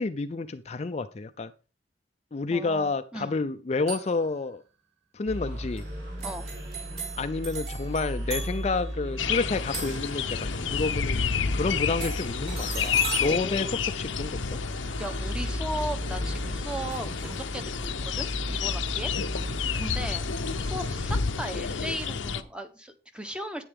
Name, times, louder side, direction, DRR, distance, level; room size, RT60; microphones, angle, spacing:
voice 1, 0.0-1.5 2.3-4.6 5.1-5.8 7.2-14.6, left 3 dB, 35° left, 10 dB, 0.4 m, -30 dB
voice 2, 2.5-3.4 6.2-6.5 13.3-13.7 15.0-19.1 19.7-20.3 20.5-23.6, equal, 5° right, 8 dB, 0.9 m, -37 dB
sound 1, 3.9-4.3 5.8-5.9 6.2-10.7 12.0-14.5 16.9-17.5, right 4 dB, 35° right, 4.4 m, -39 dB
sound 2, 5.3-21.2, equal, 70° right, 4.4 m, -36 dB
sound 3, 9.2-22.4, left 6 dB, 90° left, 0.7 m, -30 dB
9.9 x 8.9 x 3.5 m, 0.34 s
head